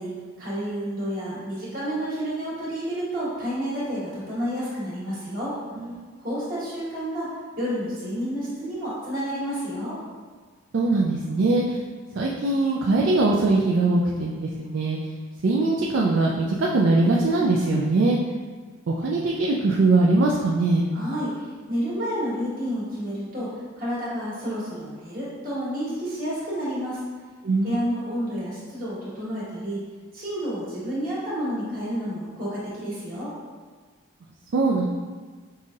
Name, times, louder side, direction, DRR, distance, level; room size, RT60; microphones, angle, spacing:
voice 1, 0.0-5.6 6.2-7.3 7.6-10.0 20.9-27.0 27.6-29.8 30.1-33.3, equal, 45° right, -9 dB, 1.5 m, -30 dB
voice 2, 10.7-11.8 12.2-15.0 15.4-18.2 18.9-20.9 27.4-28.0 34.5-34.9, right 2 dB, 65° right, -3 dB, 0.3 m, -21 dB
5.5 x 2.6 x 2.4 m, 1.5 s
head